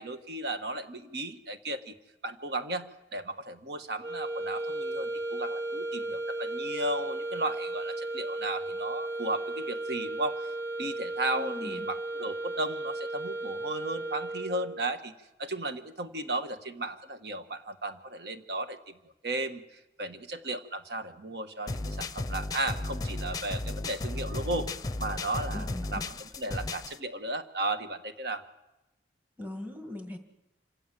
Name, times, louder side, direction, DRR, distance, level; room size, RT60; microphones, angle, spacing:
voice 1, 0.0-1.9 2.2-10.4 10.8-15.1 15.4-18.8 19.2-24.7 25.0-25.6 25.9-26.0 26.4-28.4, right 2 dB, 65° right, 8 dB, 1.5 m, -35 dB
sound 1, 4.0-14.9, right 2 dB, 85° right, 1.2 m, -35 dB
voice 2, 11.2-11.9 25.5-26.1 29.4-30.2, left 1 dB, 10° right, 5 dB, 2.0 m, -40 dB
sound 2, 21.7-27.0, left 2 dB, 20° left, 0.7 m, -34 dB
27.0 x 17.0 x 7.6 m, 0.97 s
head